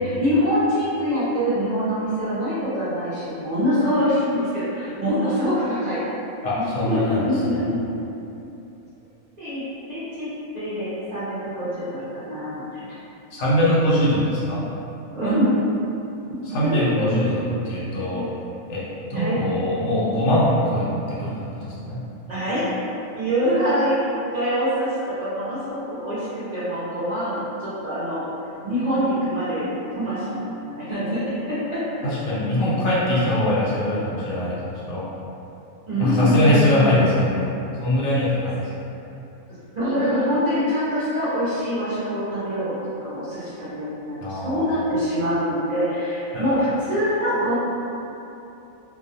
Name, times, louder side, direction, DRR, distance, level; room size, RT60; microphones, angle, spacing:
voice 1, 0.0-6.0 6.6-7.8 9.4-9.6 9.9-10.3 10.5-12.9 15.1-15.6 16.5-16.8 17.9-18.2 19.1-19.4 22.3-22.7 23.1-28.2 28.6-31.2 31.5-31.8 35.9-37.2 39.7-42.7 43.0-47.5, equal, 55° right, -13 dB, 0.4 m, -24 dB
voice 2, 6.4-7.2 7.5-7.7 13.3-14.6 16.5-17.4 17.6-18.4 18.7-18.8 19.1-22.0 32.0-34.6 34.9-35.0 36.0-37.5 37.8-38.7 44.2-44.7 46.3-46.6, left 1 dB, 75° left, -8 dB, 0.9 m, -22 dB
2.3 x 2.2 x 2.6 m, 2.9 s
omnidirectional pair, 1.4 m